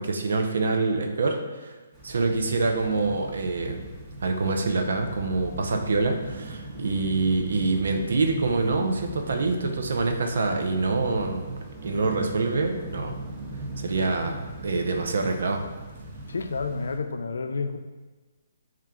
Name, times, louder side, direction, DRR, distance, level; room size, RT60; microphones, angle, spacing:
voice 1, 0.0-1.7 2.0-3.8 4.2-13.2 13.8-15.6, right 3 dB, 75° right, 4 dB, 0.5 m, -26 dB
sound 1, 1.9-17.0, right 2 dB, 15° right, 0.5 m, -40 dB
voice 2, 16.3-17.8, left 4 dB, 80° left, 8 dB, 0.3 m, -30 dB
4.4 x 2.4 x 3.5 m, 1.2 s
hypercardioid pair, 160°, 0 cm